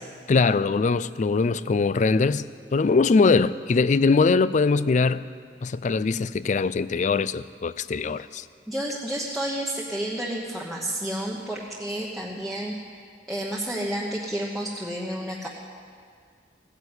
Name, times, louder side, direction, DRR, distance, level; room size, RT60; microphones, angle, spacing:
voice 1, 0.3-2.4 2.7-5.3 5.6-8.4, left 4 dB, 40° left, 17 dB, 0.4 m, -22 dB
voice 2, 8.7-12.7 13.3-15.5, right 1 dB, ahead, -4 dB, 1.1 m, -30 dB
16.5 x 9.9 x 8.0 m, 2.1 s
head